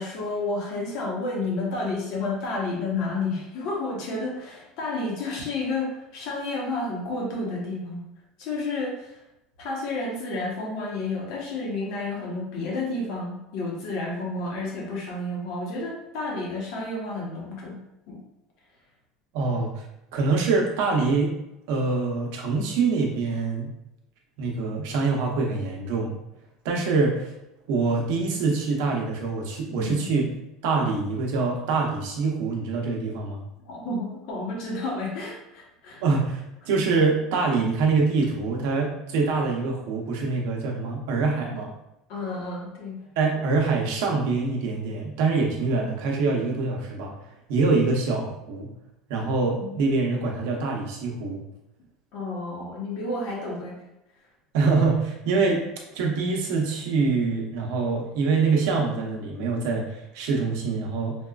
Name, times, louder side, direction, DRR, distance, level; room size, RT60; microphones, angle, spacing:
voice 1, 0.0-8.0 8.4-9.2 9.6-17.8 18.1-18.2 29.7-30.1 33.7-36.0 42.1-43.0 49.2-49.3 49.6-49.8 52.1-53.8, left 2 dB, 55° left, -2 dB, 0.9 m, -31 dB
voice 2, 19.3-19.8 20.1-21.4 21.7-23.7 24.4-26.2 26.6-27.3 27.7-30.3 30.6-33.4 36.0-41.7 43.2-47.1 47.5-48.7 49.1-51.4 54.5-55.6 55.9-61.1, right 4 dB, 70° right, 0 dB, 0.7 m, -25 dB
4.2 x 2.3 x 2.3 m, 0.88 s
cardioid pair, 165°, 0 cm